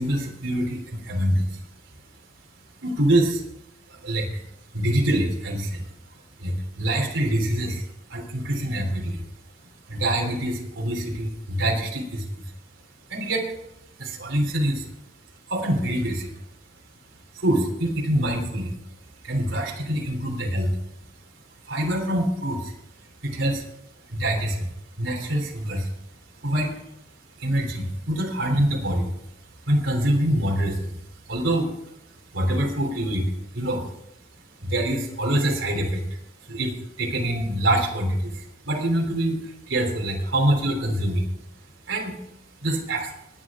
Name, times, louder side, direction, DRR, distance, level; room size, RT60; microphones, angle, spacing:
voice 1, 0.0-1.6 2.8-3.4 3.9-4.5 4.7-9.2 9.9-12.5 13.1-13.5 14.0-14.9 15.5-16.4 17.3-18.8 19.2-20.8 21.6-22.7 23.2-23.7 24.1-25.9 26.4-26.7 27.4-29.1 29.7-31.9 32.3-33.8 34.6-36.0 36.4-41.3 41.9-42.2 42.6-43.1, right 1 dB, 85° right, 0 dB, 3.4 m, -25 dB
19.5 x 9.8 x 3.7 m, 0.80 s
head